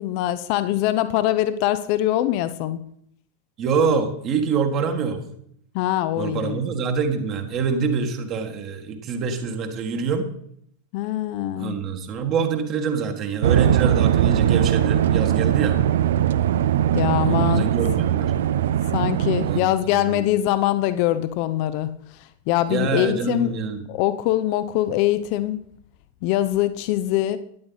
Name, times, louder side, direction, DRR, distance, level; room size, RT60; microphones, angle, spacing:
voice 1, 0.0-2.8 5.7-6.6 10.9-11.8 16.9-17.7 18.9-21.9 22.5-23.5 23.9-25.6 26.2-27.4, left 13 dB, 45° left, 13 dB, 0.7 m, -23 dB
voice 2, 3.6-5.2 6.2-10.3 11.6-15.8 17.2-18.3 19.4-20.2 22.7-23.8, right 5 dB, 35° right, 5 dB, 1.6 m, -25 dB
sound 1, 13.4-19.6, right 11 dB, 60° right, 0.5 m, -20 dB
13.0 x 10.5 x 4.0 m, 0.68 s
figure-of-eight pair, 90°, 0 cm